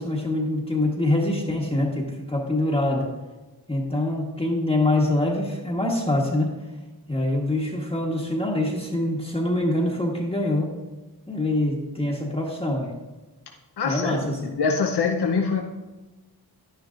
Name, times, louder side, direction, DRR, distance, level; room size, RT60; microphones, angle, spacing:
voice 1, 0.0-3.1 3.7-6.6 7.1-10.8 11.3-12.9 13.8-14.5, left 1 dB, 15° left, -4 dB, 1.2 m, -24 dB
voice 2, 13.8-14.2 14.4-15.6, left 5 dB, 75° left, 2 dB, 0.8 m, -24 dB
10.5 x 10.5 x 2.5 m, 1.2 s
wide cardioid pair, 90°, 39 cm